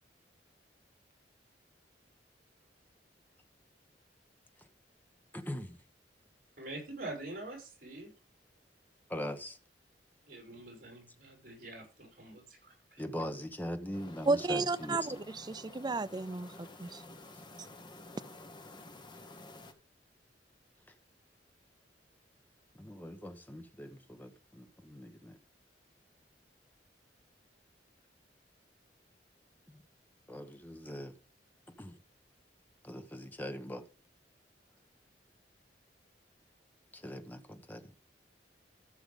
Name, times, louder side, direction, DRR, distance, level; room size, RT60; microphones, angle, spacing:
voice 1, 5.3-5.8 9.1-9.6 13.0-15.0 22.7-25.4 29.7-29.8 30.3-31.1 31.8-32.0 32.8-33.9 36.9-37.9, equal, 10° left, 1.1 m, -41 dB
voice 2, 6.6-8.1 10.3-13.0, right 2 dB, 55° right, 6.0 m, -45 dB
sound 1, 13.9-19.7, left 2 dB, 25° left, 1.3 m, -51 dB
voice 3, 14.3-17.0, right 3 dB, 25° right, 0.5 m, -33 dB
14.5 x 6.9 x 3.7 m
head